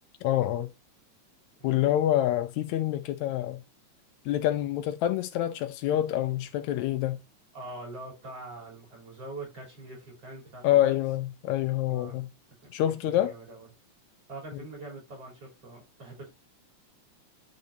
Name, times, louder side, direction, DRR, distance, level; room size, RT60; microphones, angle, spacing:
voice 1, 0.2-0.7 1.6-3.6 4.3-7.2 10.6-12.3 12.7-13.3 14.5-14.6, left 13 dB, 80° left, 1.9 m, -26 dB
voice 2, 7.5-11.0 11.9-12.2 12.9-13.7 14.3-16.3, right 2 dB, 50° right, 4.5 m, -43 dB
10.5 x 4.0 x 2.7 m
omnidirectional pair, 3.3 m